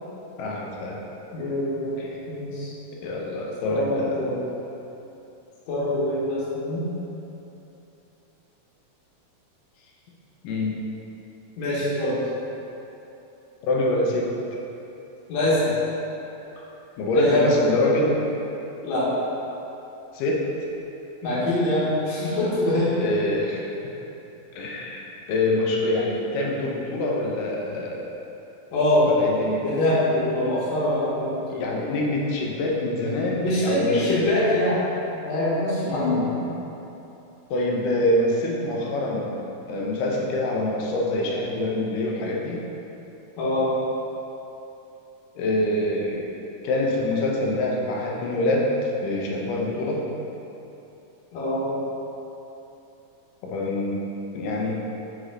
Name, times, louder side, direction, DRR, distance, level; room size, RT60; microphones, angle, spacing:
voice 1, 0.4-1.1 2.0-2.2 3.0-4.2 10.4-10.8 13.6-14.3 17.0-18.2 20.1-20.5 23.0-23.8 24.6-25.0 25.3-28.1 29.0-29.6 31.5-34.3 35.8-36.3 37.5-39.3 39.7-42.7 45.4-46.3 46.6-50.1 53.4-54.1 54.3-54.7, left 1 dB, 85° left, -2 dB, 2.4 m, -25 dB
voice 2, 1.3-2.0 2.3-2.7 3.7-4.4 5.7-6.9 11.6-12.2 15.3-15.7 17.1-17.5 18.8-19.1 21.2-23.0 28.7-29.1 29.6-31.6 33.4-34.8 35.2-36.4 43.4-43.7 51.3-51.7, left 1 dB, 65° left, -10 dB, 2.5 m, -24 dB
5.2 x 4.9 x 3.8 m, 3.0 s
omnidirectional pair, 3.8 m